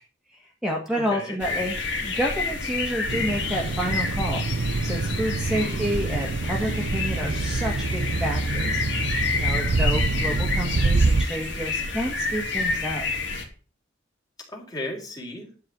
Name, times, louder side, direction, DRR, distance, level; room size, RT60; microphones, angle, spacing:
voice 1, 0.3-1.8 2.0-4.4 4.8-13.0, equal, 5° right, -2 dB, 1.9 m, -29 dB
voice 2, 0.9-1.4 5.5-6.0 14.5-15.5, left 1 dB, 20° left, -1 dB, 4.1 m, -35 dB
sound 1, 1.4-13.4, left 4 dB, 65° left, 3.4 m, -29 dB
sound 2, 3.1-11.2, right 3 dB, 70° right, 0.7 m, -26 dB
12.0 x 4.8 x 8.2 m, 0.38 s
head